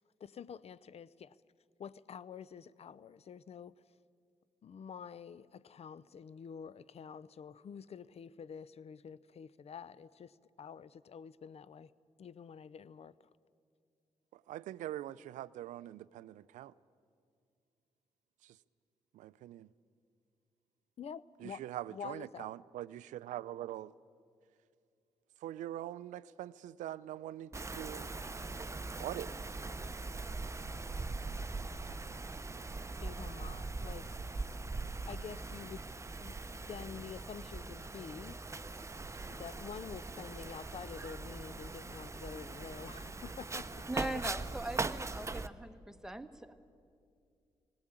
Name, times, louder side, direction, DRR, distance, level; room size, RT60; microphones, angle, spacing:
voice 1, 0.2-1.4 1.8-3.7 4.6-11.9 12.2-13.2 21.0-22.5 33.0-34.1 35.1-35.9 36.1-38.4 39.3-43.9, left 7 dB, 55° left, 0.6 m, -48 dB
voice 2, 14.5-16.7 18.4-18.5 19.1-19.7 21.4-23.9 25.4-28.1 29.0-29.3, right 13 dB, 85° right, 0.4 m, -43 dB
Wind, 27.5-45.5, right 3 dB, 25° right, 0.8 m, -41 dB
voice 3, 43.9-46.5, right 1 dB, 5° right, 1.3 m, -41 dB
18.5 x 17.0 x 8.9 m
supercardioid pair, 50°, 12 cm